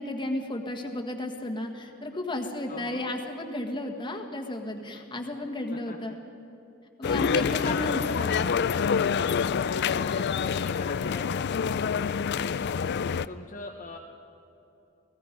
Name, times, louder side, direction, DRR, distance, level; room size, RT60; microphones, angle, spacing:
voice 1, 0.0-6.2 7.0-8.6, left 1 dB, 20° left, 3 dB, 1.7 m, -33 dB
voice 2, 2.7-3.0 5.7-6.2 7.0-8.3 9.3-12.7 13.3-14.0, left 3 dB, 35° left, 1 dB, 1.0 m, -41 dB
sound 1, 7.0-13.3, left 6 dB, 50° left, 0.4 m, -27 dB
29.0 x 18.0 x 5.3 m, 2.8 s
head